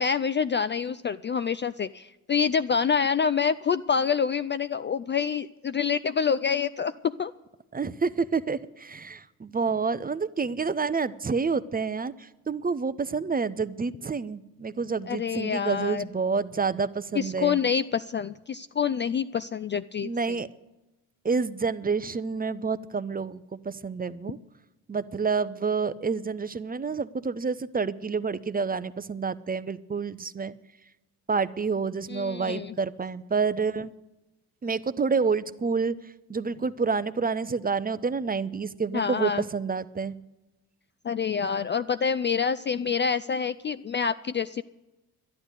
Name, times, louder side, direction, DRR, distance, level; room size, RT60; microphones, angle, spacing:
voice 1, 0.0-7.3 15.1-16.0 17.1-20.4 32.1-32.8 38.9-39.4 41.0-44.6, left 6 dB, 25° left, 13 dB, 0.4 m, -27 dB
voice 2, 7.7-17.6 20.0-20.5 21.2-24.4 24.9-30.5 31.3-33.9 34.6-35.9 36.3-40.2, right 5 dB, 20° right, 15 dB, 0.6 m, -28 dB
11.5 x 11.0 x 8.1 m, 1.0 s
hypercardioid pair, 50°, 45 cm